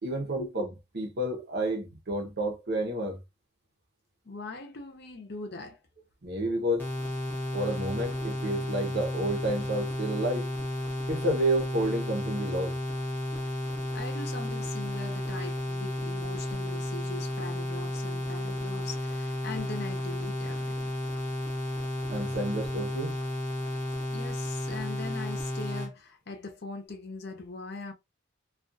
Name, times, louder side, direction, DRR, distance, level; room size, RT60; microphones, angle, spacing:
voice 1, 0.0-0.7 0.9-3.2 6.2-6.9 7.5-10.5 11.1-12.8 22.1-23.1, right 1 dB, 50° right, 0.7 m, -30 dB
voice 2, 4.2-5.8 13.9-20.9 24.1-27.9, left 3 dB, 50° left, 0.6 m, -41 dB
sound 1, 6.8-25.9, left 1 dB, 10° left, 0.8 m, -33 dB
2.4 x 2.3 x 2.5 m
head